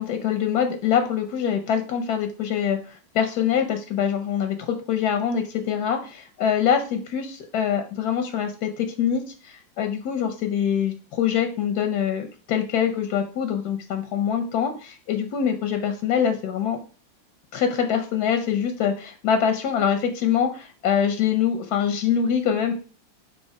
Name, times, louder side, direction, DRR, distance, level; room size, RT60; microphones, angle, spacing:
voice 1, 0.0-16.8 17.5-22.7, left 8 dB, 65° left, 7 dB, 1.0 m, -24 dB
7.4 x 3.1 x 4.7 m, 0.38 s
omnidirectional pair, 2.3 m